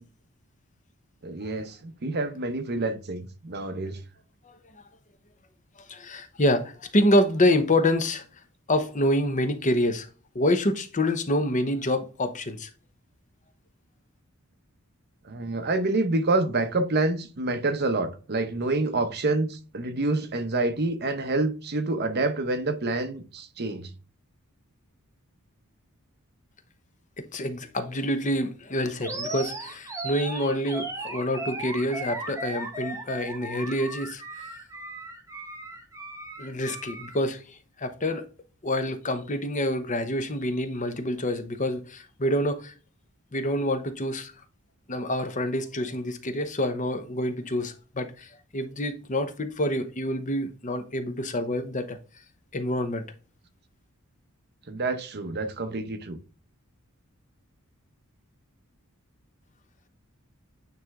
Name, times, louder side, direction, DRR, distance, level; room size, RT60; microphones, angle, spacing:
voice 1, 1.2-4.0 15.2-23.9 54.7-56.2, right 2 dB, 50° right, 0.9 m, -27 dB
voice 2, 5.9-8.2 8.7-10.1 10.3-12.7 27.2-34.5 36.4-37.4 37.8-38.2 38.6-42.7 43.3-44.3 44.9-52.0 52.5-53.0, left 1 dB, 35° left, 0.8 m, -27 dB
Animal, 29.0-37.2, right 2 dB, 15° right, 1.2 m, -36 dB
9.4 x 3.3 x 3.7 m
head